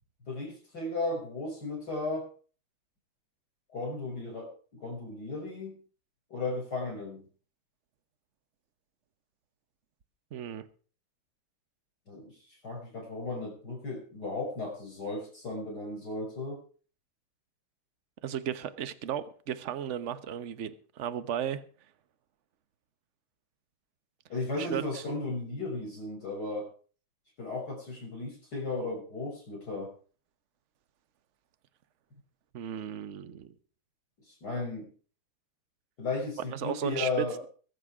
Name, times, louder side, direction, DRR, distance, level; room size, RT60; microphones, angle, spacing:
voice 1, 0.3-2.3 3.7-5.8 6.3-7.3 12.1-16.6 24.3-26.7 27.4-29.9 34.3-34.9 36.0-37.4, left 2 dB, 50° left, 6.5 m, -35 dB
voice 2, 10.3-10.7 18.2-20.7 21.0-21.6 24.6-25.0 32.5-33.5 36.5-37.1, right 9 dB, 45° right, 1.0 m, -35 dB
22.0 x 7.8 x 4.9 m
omnidirectional pair, 2.3 m